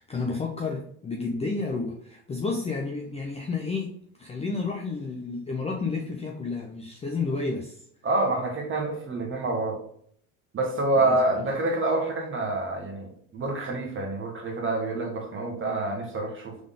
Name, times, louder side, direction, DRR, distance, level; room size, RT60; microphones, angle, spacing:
voice 1, 0.0-7.8 11.0-11.4, left 4 dB, 15° left, 0 dB, 0.5 m, -31 dB
voice 2, 8.0-9.8 10.5-16.6, right 2 dB, 25° right, 1 dB, 1.3 m, -27 dB
3.8 x 3.5 x 3.6 m, 0.66 s
hypercardioid pair, 90°, 44 cm